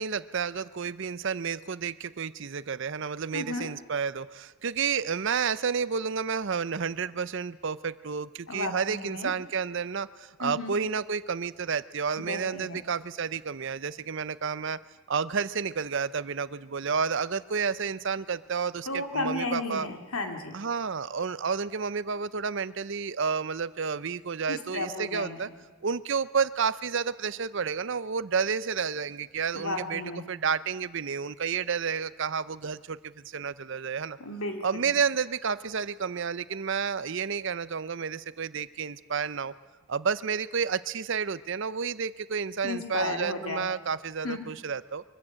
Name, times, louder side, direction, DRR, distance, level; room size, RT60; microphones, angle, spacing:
voice 1, 0.0-14.8 15.1-19.9 20.5-25.5 25.8-30.0 30.3-34.2 34.6-39.5 39.9-45.0, right 6 dB, 55° right, 17 dB, 0.6 m, -30 dB
voice 2, 3.3-3.7 8.5-9.3 10.4-10.7 12.2-12.8 18.9-20.6 24.5-25.5 29.5-30.2 34.2-35.0 42.6-43.7 44.2-44.4, left 2 dB, 70° left, 5 dB, 2.7 m, -34 dB
23.5 x 14.5 x 8.7 m, 1.3 s
head